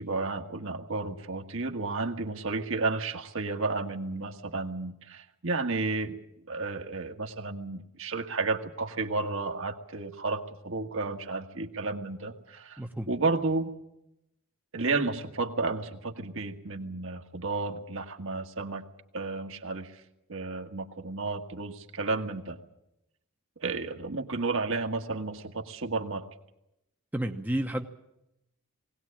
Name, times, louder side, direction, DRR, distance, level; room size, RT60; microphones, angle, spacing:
voice 1, 0.0-6.2 6.5-12.8 13.1-13.7 14.7-18.8 19.1-20.0 20.3-22.6 23.6-26.3, right 3 dB, 60° right, 5 dB, 1.7 m, -32 dB
voice 2, 12.8-13.1 27.1-27.9, right 1 dB, 10° right, 3 dB, 0.9 m, -31 dB
20.5 x 18.0 x 8.6 m, 0.86 s
head